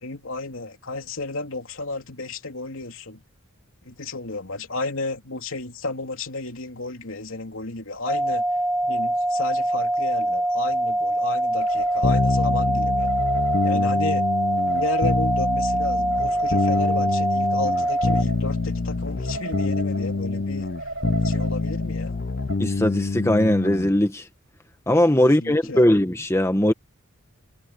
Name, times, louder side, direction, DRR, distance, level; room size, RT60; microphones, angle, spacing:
voice 1, 0.0-3.2 3.8-8.4 8.8-13.1 13.6-14.3 14.7-20.7 21.2-22.2 25.2-25.9, left 2 dB, 70° left, 3.1 m, -33 dB
sound 1, 8.1-18.2, right 1 dB, 5° right, 0.6 m, -24 dB
sound 2, 11.6-22.6, right 2 dB, 60° right, 5.5 m, -36 dB
sound 3, 12.0-23.9, left 3 dB, 45° left, 0.5 m, -26 dB
voice 2, 22.6-24.3 24.9-26.7, left 1 dB, 15° left, 1.2 m, -20 dB
head